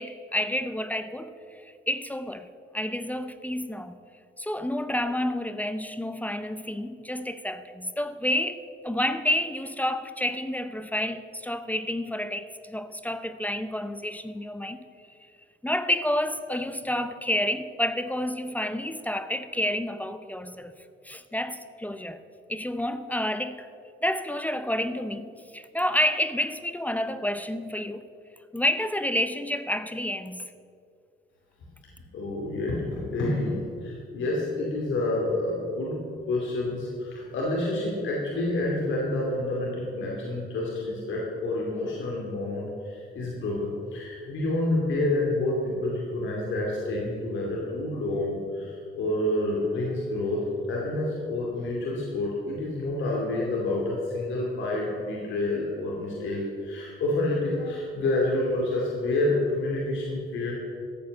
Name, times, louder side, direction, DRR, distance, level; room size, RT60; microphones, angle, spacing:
voice 1, 0.0-2.5 2.7-4.0 4.4-14.8 15.6-20.7 21.0-22.2 22.5-23.7 24.0-28.1 28.5-30.5, left 1 dB, 10° left, 11 dB, 0.7 m, -29 dB
voice 2, 32.1-36.0 36.3-60.5, left 2 dB, 75° left, -3 dB, 2.6 m, -28 dB
13.5 x 7.8 x 6.7 m, 2.4 s
cardioid pair, 90°, 20 cm